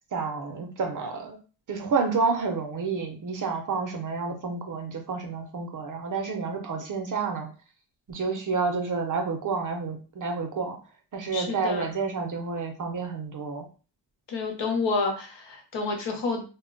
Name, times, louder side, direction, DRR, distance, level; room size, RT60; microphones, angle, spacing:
voice 1, 0.1-1.4 1.7-7.5 8.1-10.8 11.1-13.7, right 4 dB, 45° right, 4 dB, 0.5 m, -29 dB
voice 2, 11.3-11.9 14.3-16.4, left 3 dB, 70° left, 2 dB, 1.0 m, -29 dB
2.1 x 2.1 x 3.7 m, 0.35 s
wide cardioid pair, 155°, 44 cm